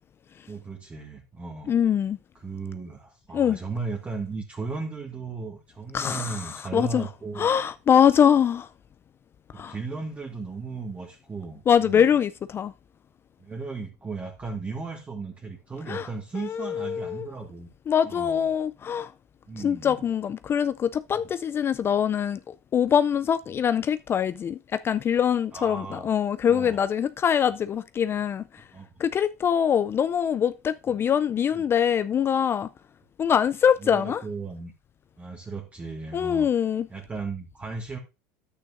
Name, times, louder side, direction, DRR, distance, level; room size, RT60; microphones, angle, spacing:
voice 1, 0.5-1.7 2.4-7.5 9.5-12.1 13.4-17.7 18.0-18.5 19.5-20.0 21.1-21.2 23.5-23.6 25.5-26.1 26.5-26.8 28.7-28.9 31.5-31.6 33.8-34.7 35.2-36.5 36.9-38.0, right 4 dB, 20° right, 1.7 m, -36 dB
voice 2, 1.7-2.2 3.3-3.6 5.9-7.1 7.4-8.7 9.6-9.7 11.7-12.7 15.9-16.1 16.4-17.3 17.9-19.1 19.6-28.6 29.0-32.7 33.2-34.2 36.1-36.9, left 8 dB, 30° left, 0.4 m, -23 dB
10.5 x 8.6 x 2.5 m
hypercardioid pair, 95°, 8 cm